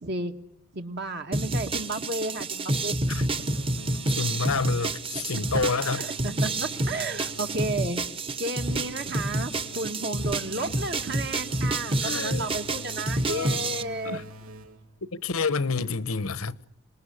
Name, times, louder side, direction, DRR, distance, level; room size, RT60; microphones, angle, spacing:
voice 1, 0.0-0.3 0.7-3.0 5.9-8.0 8.4-14.2, right 2 dB, 50° right, 1.5 m, -33 dB
sound 1, 1.3-13.8, right 2 dB, 25° right, 1.1 m, -29 dB
sound 2, 3.3-5.0 5.4-7.9 8.6-15.0, equal, 80° right, 3.2 m, -45 dB
voice 2, 4.2-6.0 12.0-12.5 13.2-13.6 14.0-14.2 15.1-16.6, left 4 dB, 85° left, 1.1 m, -28 dB
26.5 x 20.5 x 10.0 m
head